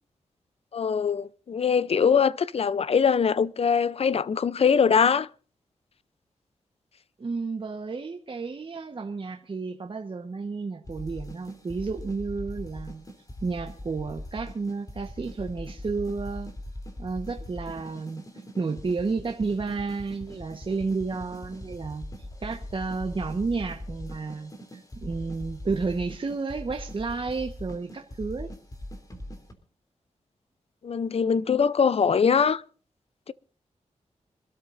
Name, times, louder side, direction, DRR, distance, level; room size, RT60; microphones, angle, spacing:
voice 1, 0.7-5.3 30.8-32.6 33.3-33.4, left 6 dB, 55° left, 0.6 m, -22 dB
voice 2, 7.2-13.1 13.4-16.5 17.0-22.1 22.4-28.5, right 4 dB, 45° right, 1.3 m, -31 dB
sound 1, 10.8-29.5, left 1 dB, 30° left, 3.1 m, -41 dB
25.5 x 13.0 x 2.6 m
wide cardioid pair, 100°, 12 cm